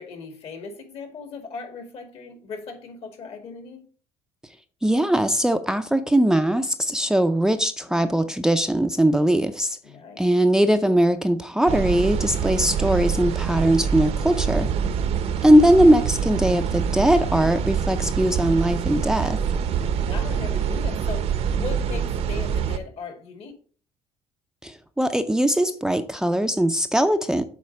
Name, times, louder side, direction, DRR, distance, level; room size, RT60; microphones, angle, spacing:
voice 1, 0.0-3.9 7.8-8.3 9.8-10.2 19.9-23.5, left 5 dB, 60° left, 2.0 m, -38 dB
voice 2, 4.8-9.8 10.2-14.7 15.4-19.4 24.6-27.4, right 1 dB, 5° right, 0.5 m, -20 dB
sound 1, 11.7-22.8, right 7 dB, 60° right, 0.8 m, -25 dB
7.4 x 4.2 x 5.7 m
cardioid pair, 115°, 12 cm